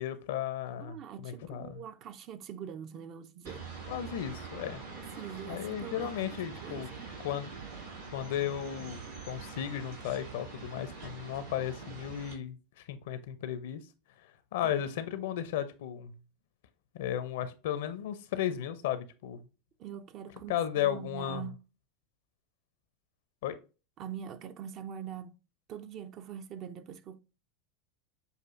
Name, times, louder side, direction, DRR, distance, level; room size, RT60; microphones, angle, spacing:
voice 1, 0.0-1.8 3.9-4.8 5.5-6.9 7.2-7.5 8.1-12.6 12.9-13.8 14.5-16.1 16.9-19.4 20.5-21.4 23.4-23.6, left 10 dB, 75° left, 0.6 m, -34 dB
voice 2, 0.8-3.7 5.0-7.2 14.6-14.9 19.8-21.7 24.0-25.4 25.7-27.2, right 9 dB, 45° right, 0.5 m, -44 dB
sound 1, 3.4-12.3, right 4 dB, 85° right, 2.4 m, -44 dB
6.6 x 2.4 x 2.5 m
hypercardioid pair, 95°, 0 cm